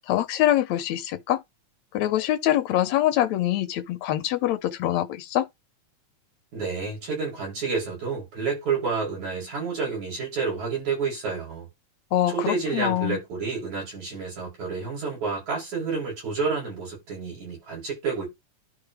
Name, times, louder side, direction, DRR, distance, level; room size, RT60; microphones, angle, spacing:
voice 1, 0.1-1.4 1.9-5.5 12.1-13.2, left 13 dB, 75° left, 2.0 m, -24 dB
voice 2, 6.5-11.7 12.3-18.3, right 4 dB, 70° right, 7.6 m, -29 dB
12.5 x 4.7 x 3.2 m
omnidirectional pair, 3.4 m